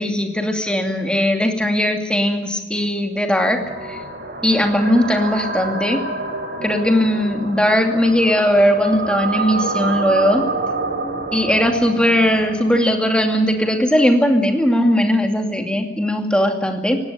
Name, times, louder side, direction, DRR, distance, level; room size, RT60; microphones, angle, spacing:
voice 1, 0.0-4.0 4.4-6.0 6.6-10.4 11.3-17.0, equal, 5° left, 3 dB, 2.5 m, -18 dB
sound 1, 3.6-13.7, right 3 dB, 55° right, 5.1 m, -28 dB
18.5 x 16.5 x 9.4 m, 1.2 s
head